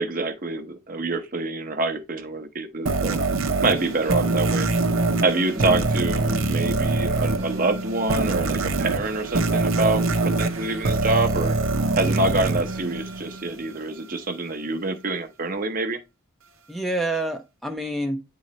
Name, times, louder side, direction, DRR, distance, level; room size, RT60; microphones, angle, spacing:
voice 1, 0.0-3.2 3.6-4.7 5.2-11.5 11.9-16.0, right 3 dB, 40° right, 0.8 m, -26 dB
sound 1, 2.9-13.6, right 2 dB, 75° right, 0.8 m, -24 dB
voice 2, 5.5-5.9 16.7-18.2, right 1 dB, ahead, 0.5 m, -28 dB
9.3 x 3.9 x 3.1 m
head